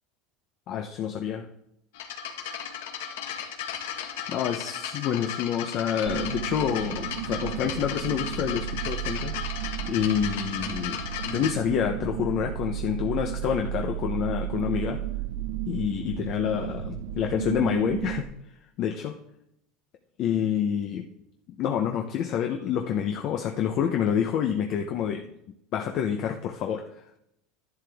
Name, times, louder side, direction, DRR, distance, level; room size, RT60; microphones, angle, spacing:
voice 1, 0.7-1.5 4.3-9.4 9.9-15.0 15.7-18.3 18.8-19.2 20.2-21.1 21.6-25.2 25.7-26.9, left 9 dB, 40° left, 4 dB, 0.8 m, -28 dB
sound 1, 1.9-11.5, left 8 dB, 90° left, 1.5 m, -35 dB
sound 2, 6.1-18.2, right 12 dB, 60° right, 0.6 m, -33 dB
11.5 x 11.0 x 3.5 m, 0.80 s
supercardioid pair, 155°, 0 cm